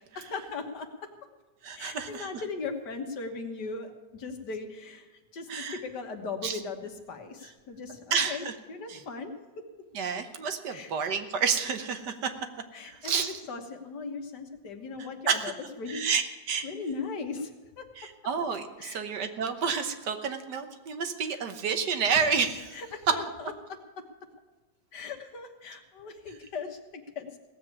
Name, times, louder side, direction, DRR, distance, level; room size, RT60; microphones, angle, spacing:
voice 1, 0.2-0.9 1.8-9.3 10.7-10.9 12.7-15.5 15.8-16.1 16.6-17.5 17.8-17.9 18.8-19.0 21.3-21.4 22.7-23.5 24.0-24.1 24.9-27.5, left 4 dB, 65° left, 5 dB, 1.9 m, -38 dB
voice 2, 1.6-2.4 5.5-5.8 6.4-6.6 8.1-8.5 8.9-9.0 9.9-12.3 12.8-13.3 15.3-15.4 15.9-16.7 18.0-22.8, right 6 dB, 70° right, 8 dB, 1.6 m, -30 dB
17.0 x 7.6 x 8.3 m, 1.3 s
omnidirectional pair, 1.9 m